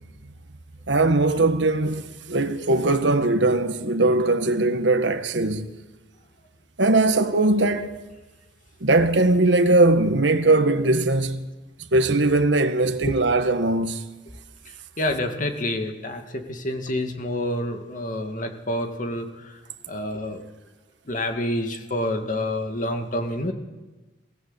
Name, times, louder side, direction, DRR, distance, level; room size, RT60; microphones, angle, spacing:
voice 1, 0.9-5.7 6.8-8.0 8.8-11.4 11.9-14.1, right 2 dB, 80° right, 1.5 m, -20 dB
voice 2, 12.7-13.2 14.7-19.6 19.9-20.4 21.1-23.5, left 1 dB, 45° left, 2.3 m, -28 dB
23.5 x 15.5 x 8.2 m
head